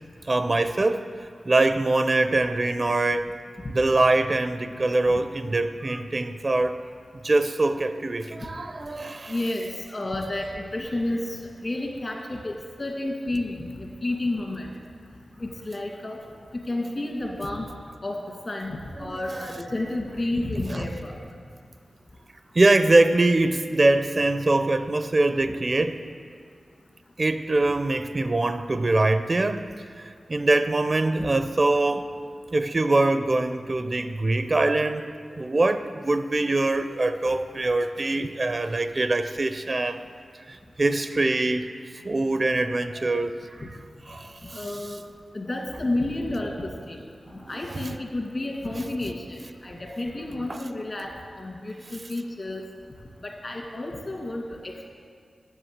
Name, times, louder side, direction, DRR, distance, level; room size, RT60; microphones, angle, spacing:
voice 1, 0.2-1.1 1.4-3.3 3.7-6.8 7.2-9.4 19.0-19.5 20.7-20.8 22.5-26.0 27.2-29.7 30.0-32.1 32.5-40.0 40.5-41.7 42.0-43.7 44.1-44.7 47.4-48.0 50.5-50.6, right 2 dB, 40° right, 10 dB, 0.4 m, -23 dB
voice 2, 9.3-14.7 15.4-16.2 16.7-17.6 18.0-18.2 18.4-21.1 44.5-45.0 45.3-47.0 47.5-49.4 49.6-51.1 51.4-52.6 53.2-54.9, left 2 dB, 45° left, -1 dB, 2.1 m, -31 dB
7.9 x 6.8 x 7.9 m, 2.1 s
cardioid pair, 60°, 0 cm